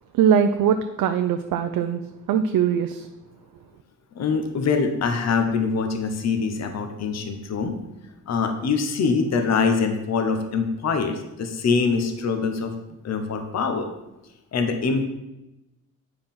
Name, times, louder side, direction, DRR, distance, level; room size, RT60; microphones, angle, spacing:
voice 1, 0.1-2.0 2.3-3.1, right 8 dB, 85° right, 7 dB, 0.6 m, -21 dB
voice 2, 4.1-7.7 8.3-12.7 13.0-13.9 14.5-15.1, left 5 dB, 50° left, 6 dB, 1.1 m, -24 dB
9.1 x 4.9 x 5.5 m, 0.96 s
cardioid pair, 145°, 33 cm